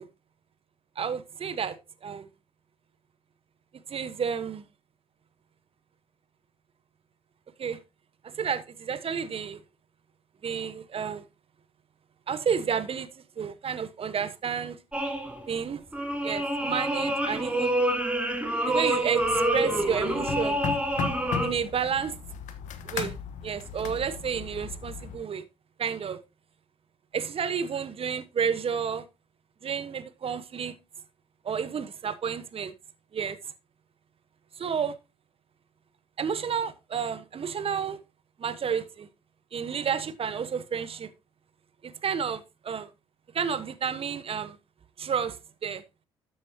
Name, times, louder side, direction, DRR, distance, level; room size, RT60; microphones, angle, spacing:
voice 1, 1.0-1.8 2.0-2.2 3.9-4.6 7.6-7.8 8.2-9.6 10.4-11.2 12.3-13.1 13.4-14.8 15.5-15.8 16.2-17.8 18.6-20.6 21.4-22.2 22.8-23.1 23.4-25.4 25.8-26.2 27.1-29.0 29.6-30.7 31.4-32.7 33.1-33.4 34.6-34.9 36.2-38.0 38.4-39.1 39.5-41.1 41.8-42.9 43.3-44.6 45.0-45.8, right 7 dB, 45° right, 1.2 m, -31 dB
sound 1, 14.9-15.5 15.9-21.5, right 1 dB, 10° right, 3.0 m, -27 dB
sound 2, 19.2-25.2, left 7 dB, 65° left, 1.4 m, -37 dB
12.5 x 8.4 x 2.8 m
hypercardioid pair, 50°, 14 cm